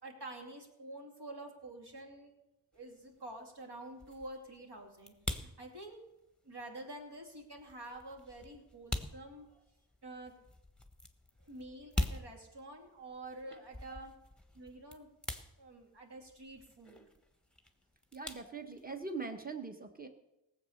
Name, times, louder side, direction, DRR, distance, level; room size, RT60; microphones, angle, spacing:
voice 1, 0.0-2.3 2.7-6.0 6.4-9.6 10.0-10.3 11.4-14.1 14.5-15.1 15.6-17.0, right 1 dB, 55° right, 1 dB, 2.8 m, -48 dB
sound 1, 2.7-19.2, left 1 dB, ahead, 1.3 m, -44 dB
voice 2, 18.1-20.1, right 4 dB, 20° right, 5 dB, 1.5 m, -42 dB
17.5 x 7.7 x 6.6 m, 0.91 s
wide cardioid pair, 60°, 47 cm